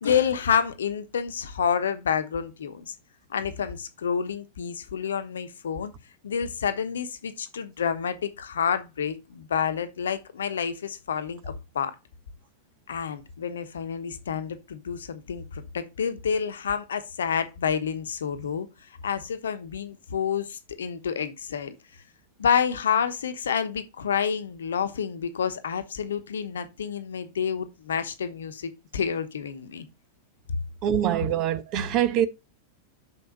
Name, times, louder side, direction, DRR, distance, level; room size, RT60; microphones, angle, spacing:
voice 1, 0.0-2.9 3.3-5.9 6.2-12.0 12.9-18.7 19.0-21.7 22.4-29.9, left 7 dB, 65° left, 1.0 m, -29 dB
voice 2, 30.8-32.3, right 11 dB, 40° right, 1.0 m, -24 dB
6.3 x 5.6 x 5.3 m
figure-of-eight pair, 90°, 0 cm